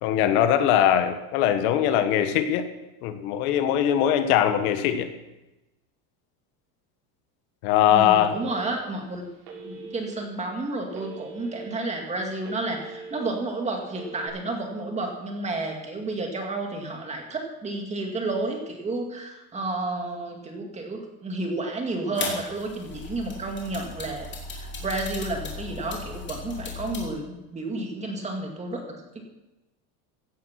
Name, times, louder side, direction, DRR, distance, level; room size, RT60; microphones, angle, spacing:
voice 1, 0.0-2.7 3.0-5.1 7.6-8.4, left 10 dB, 70° left, 8 dB, 1.7 m, -21 dB
voice 2, 7.9-9.3 9.5-28.8, right 2 dB, 15° right, 2 dB, 2.2 m, -31 dB
Telephone, 8.3-9.0 9.4-10.2 10.9-11.7 12.1-13.2 13.9-14.3, right 3 dB, 65° right, 7.0 m, -41 dB
sound 1, 22.2-27.1, left 4 dB, 25° left, 3.0 m, -36 dB
16.5 x 11.5 x 6.0 m, 1.0 s
cardioid pair, 170°, 44 cm